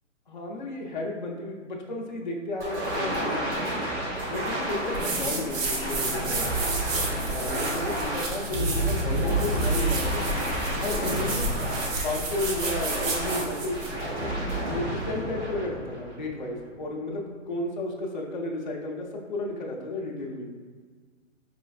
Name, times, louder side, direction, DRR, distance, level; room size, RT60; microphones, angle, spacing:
voice 1, 0.3-3.7 4.2-6.6 7.3-10.4 10.8-11.5 11.8-13.8 14.2-20.5, left 2 dB, 40° left, -2 dB, 0.4 m, -33 dB
sound 1, 2.6-16.5, right 1 dB, 60° right, 1.4 m, -30 dB
sound 2, 4.9-14.0, right 2 dB, 75° right, 0.9 m, -32 dB
4.9 x 3.1 x 2.3 m, 1.6 s
hypercardioid pair, 175°, 39 cm